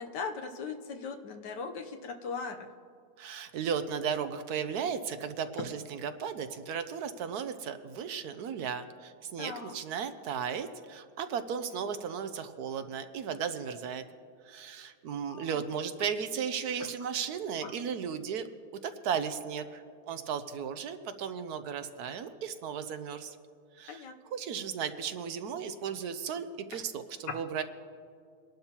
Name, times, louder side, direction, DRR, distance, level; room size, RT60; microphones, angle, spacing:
voice 1, 0.0-2.7 9.4-9.8 15.1-15.6 17.6-17.7 23.9-24.1, left 5 dB, 90° left, 4 dB, 1.5 m, -39 dB
voice 2, 3.2-14.0 14.4-18.5 18.8-23.4 23.8-24.0 24.3-27.6, right 7 dB, 70° right, 10 dB, 1.1 m, -35 dB
23.5 x 11.5 x 2.9 m, 2.2 s
omnidirectional pair, 1.8 m